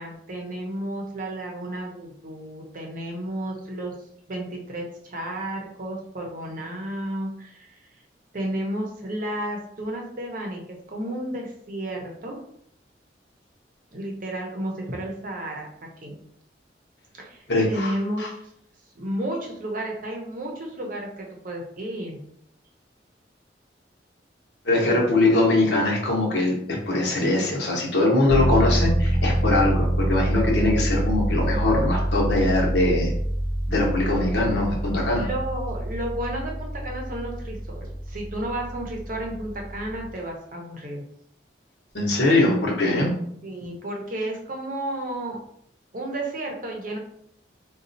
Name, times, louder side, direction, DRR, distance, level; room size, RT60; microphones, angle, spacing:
voice 1, 0.0-3.9 4.3-7.9 8.3-12.4 13.9-15.7 16.0-16.2 17.1-18.2 18.9-22.2 35.1-41.0 43.4-45.4 45.9-47.0, right 1 dB, 45° right, 0 dB, 0.7 m, -32 dB
voice 2, 17.5-18.3 24.6-33.1 33.7-35.3 41.9-43.1, left 2 dB, 70° left, -2 dB, 0.9 m, -22 dB
sound 1, 28.3-40.1, equal, 35° left, 0.5 m, -26 dB
4.0 x 2.3 x 2.6 m, 0.69 s
head